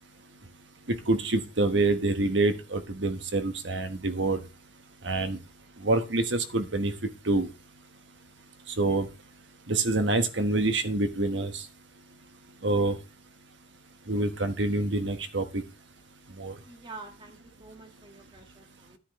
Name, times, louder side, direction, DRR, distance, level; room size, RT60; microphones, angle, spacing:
voice 1, 0.9-4.4 5.0-5.4 5.8-6.9 7.3-7.5 8.8-9.1 9.7-11.5 12.6-12.9 14.1-15.4 16.4-16.5, right 2 dB, 85° right, 8 dB, 1.3 m, -26 dB
voice 2, 16.6-19.0, right 3 dB, 25° right, 4 dB, 1.8 m, -47 dB
10.5 x 10.0 x 3.2 m, 0.29 s
head